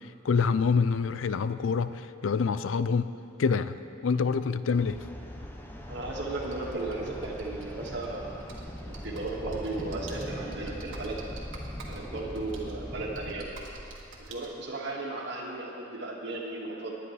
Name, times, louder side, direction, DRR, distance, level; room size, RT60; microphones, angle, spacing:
voice 1, 0.2-3.1 3.4-3.8 4.0-5.0, left 5 dB, 80° left, 13 dB, 0.4 m, -26 dB
sound 1, 4.7-13.3, equal, 10° left, 0.8 m, -41 dB
voice 2, 5.9-8.5 8.9-11.3 11.9-13.5 14.3-16.9, right 2 dB, 60° right, -2 dB, 1.8 m, -35 dB
Computer keyboard, 6.3-14.5, right 1 dB, 80° right, 1.7 m, -46 dB
19.5 x 10.0 x 3.3 m, 2.6 s
head